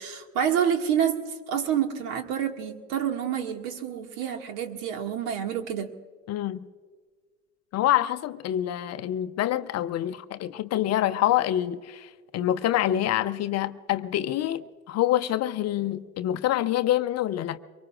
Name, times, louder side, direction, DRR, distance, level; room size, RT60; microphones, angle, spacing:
voice 1, 0.0-5.9, right 8 dB, 55° right, 2.0 m, -28 dB
voice 2, 6.3-6.7 7.7-17.6, left 12 dB, 35° left, 0.7 m, -26 dB
24.0 x 23.5 x 2.4 m
hypercardioid pair, 80°, 43 cm